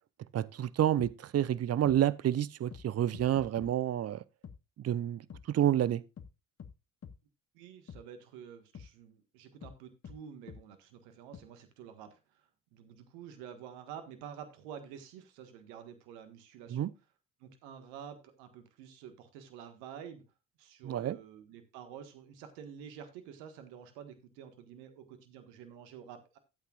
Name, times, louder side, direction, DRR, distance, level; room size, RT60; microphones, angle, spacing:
voice 1, 0.3-4.2 4.8-6.0 16.7-16.9 20.8-21.2, right 11 dB, 40° right, 0.7 m, -29 dB
sound 1, 1.0-1.1 1.8-2.0 2.7-2.8 3.1-3.7 4.4-4.6 5.3-5.4 6.2-6.3 6.6-6.7 7.0-7.2 7.9-8.0 8.7-8.9 9.6-9.8 10.0-10.2 10.5-10.6 11.3-11.4, left 7 dB, 35° left, 1.3 m, -47 dB
voice 2, 7.5-16.9 17.4-20.2 20.6-26.4, right 8 dB, 80° right, 1.6 m, -49 dB
13.0 x 8.4 x 2.4 m
hypercardioid pair, 60°, 40 cm